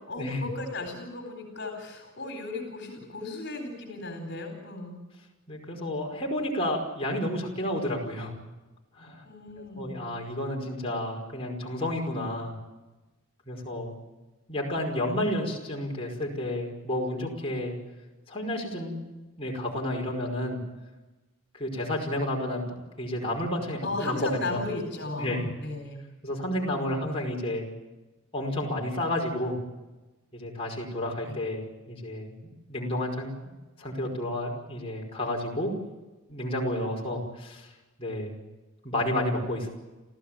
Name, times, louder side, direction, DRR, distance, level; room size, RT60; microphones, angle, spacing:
voice 1, 0.1-4.9 9.2-10.0 23.8-26.0 26.8-27.1 31.2-31.4, left 2 dB, 50° left, 5 dB, 4.2 m, -36 dB
voice 2, 5.5-8.3 9.0-9.2 9.7-12.5 13.5-13.9 14.5-17.7 18.3-19.0 19.4-20.6 21.5-22.6 23.0-24.6 25.2-25.4 26.2-27.7 28.3-29.5 30.3-32.3 32.7-33.3 33.8-35.7 36.3-37.7 38.0-38.3 38.8-39.7, left 1 dB, 25° left, -2 dB, 4.9 m, -31 dB
29.0 x 15.0 x 8.9 m, 1.1 s
head